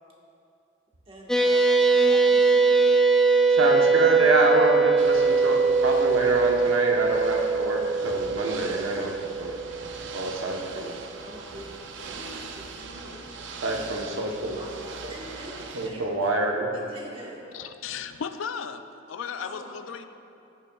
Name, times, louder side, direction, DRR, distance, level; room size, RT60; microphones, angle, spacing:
voice 1, 1.1-2.9 11.2-11.7 12.0-13.3 14.6-16.3 16.7-17.4 19.4-19.8, equal, 30° right, -3 dB, 1.3 m, -44 dB
sound 1, 1.3-10.0, right 4 dB, ahead, 0.3 m, -21 dB
voice 2, 3.5-9.1 9.4-9.5 10.1-10.9 13.6-14.6 15.7-16.7, right 2 dB, 90° right, 0 dB, 1.0 m, -26 dB
Ocean / Boat Water vehicle, 5.0-15.9, right 4 dB, 65° right, 0.6 m, -41 dB
voice 3, 17.5-20.1, left 7 dB, 75° left, 10 dB, 0.4 m, -35 dB
14.5 x 7.1 x 2.3 m, 2.7 s
head